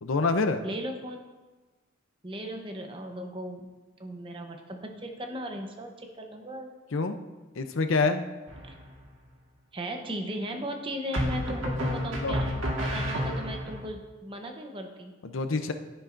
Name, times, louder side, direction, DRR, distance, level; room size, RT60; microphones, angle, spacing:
voice 1, 0.0-0.6 6.9-7.2 7.6-8.3 12.1-12.4 15.2-15.7, left 3 dB, 70° left, 8 dB, 0.6 m, -26 dB
voice 2, 0.6-1.2 2.2-3.7 4.0-6.7 8.6-8.7 9.7-15.1, equal, 25° right, 3 dB, 0.8 m, -37 dB
sound 1, 8.5-9.0 11.1-13.8, equal, 70° right, 1.6 m, -30 dB
11.0 x 10.5 x 2.6 m, 1.2 s
head